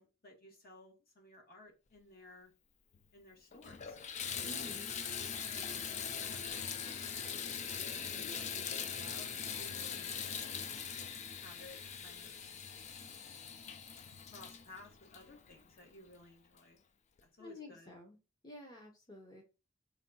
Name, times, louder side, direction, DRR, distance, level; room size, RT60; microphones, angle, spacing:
voice 1, 0.0-2.5 3.1-4.0 4.3-4.8 5.5-6.8 7.8-10.7 11.4-12.4 14.2-16.8 17.2-17.9, left 2 dB, 55° left, 1 dB, 1.4 m, -57 dB
Water tap faucet / Bathtub (filling or washing), 2.9-3.0 3.5-15.9 16.6-16.7 17.2-17.3, left 7 dB, 40° left, 0.4 m, -42 dB
voice 2, 4.4-4.9 8.2-8.3 17.4-18.2 18.4-19.4, left 1 dB, 20° left, -1 dB, 0.8 m, -51 dB
4.1 x 2.3 x 3.9 m, 0.30 s
head